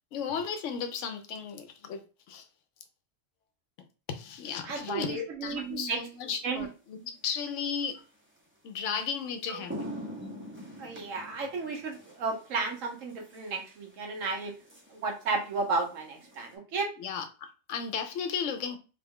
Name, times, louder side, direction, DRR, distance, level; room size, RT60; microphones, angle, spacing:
voice 1, 0.1-2.0 2.3-2.4 4.1-7.9 8.6-9.7 17.0-18.8, left 6 dB, 75° left, 0.9 m, -35 dB
voice 2, 4.6-6.0 6.4-6.7 9.5-9.6 10.8-14.5 14.9-16.9, right 4 dB, 85° right, 1.2 m, -33 dB
sound 1, 6.0-6.2 8.4-8.5 9.0-9.1 9.4-16.6, equal, 15° right, 0.4 m, -45 dB
3.0 x 2.2 x 3.5 m
omnidirectional pair, 1.3 m